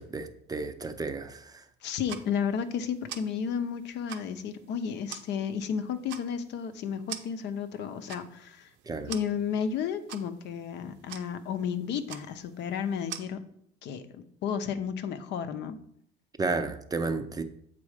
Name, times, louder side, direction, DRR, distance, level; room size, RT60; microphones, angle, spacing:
voice 1, 0.0-1.6 8.9-9.1 16.4-17.4, right 3 dB, 20° right, 0.5 m, -32 dB
voice 2, 1.8-8.7 9.1-13.4 13.8-15.8, left 7 dB, 60° left, 0.7 m, -32 dB
sound 1, 1.8-13.2, right 11 dB, 65° right, 0.7 m, -47 dB
7.4 x 4.2 x 5.0 m
cardioid pair, 125°, 20 cm